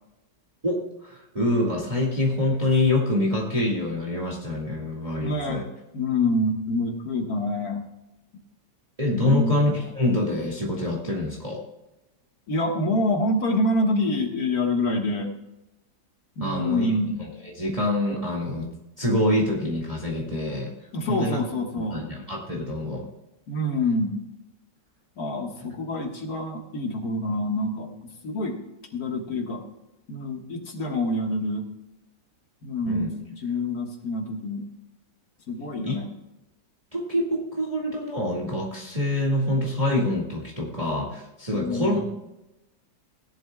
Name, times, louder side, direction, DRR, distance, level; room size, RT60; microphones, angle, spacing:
voice 1, 0.6-5.7 9.0-11.6 16.4-16.9 17.2-17.3 17.6-18.7 19.0-20.7 21.1-21.4 21.8-23.1 32.9-33.1 35.8-36.0 36.9-42.0, left 1 dB, 20° right, -2 dB, 1.9 m, -26 dB
voice 2, 5.2-5.7 5.9-7.8 9.2-9.6 12.5-15.3 16.4-17.1 20.9-22.0 23.5-24.2 25.2-28.6 28.9-29.6 30.1-31.6 32.6-34.7 35.5-36.1 41.5-42.0, left 1 dB, 60° left, 2 dB, 1.9 m, -26 dB
17.5 x 11.5 x 2.3 m, 0.95 s
omnidirectional pair, 1.9 m